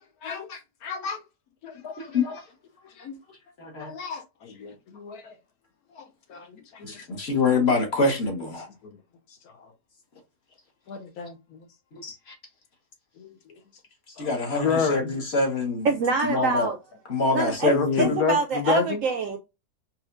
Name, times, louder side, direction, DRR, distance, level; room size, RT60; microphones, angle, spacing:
voice 1, 0.2-1.2 1.6-2.2 2.9-3.2 3.8-5.4 5.9-7.2 8.8-8.9 9.5-9.7 10.9-11.7 13.2-13.3 14.2-15.0 17.7-19.0, left 6 dB, 70° left, 1.0 m, -30 dB
voice 2, 2.0-2.4 3.6-3.9 6.8-8.7 11.9-12.3 14.1-15.9 16.2-16.7 17.1-18.2, left 3 dB, 45° left, 1.1 m, -25 dB
voice 3, 15.8-16.8 17.3-19.4, right 4 dB, 70° right, 0.7 m, -25 dB
4.3 x 2.3 x 2.4 m
omnidirectional pair, 1.8 m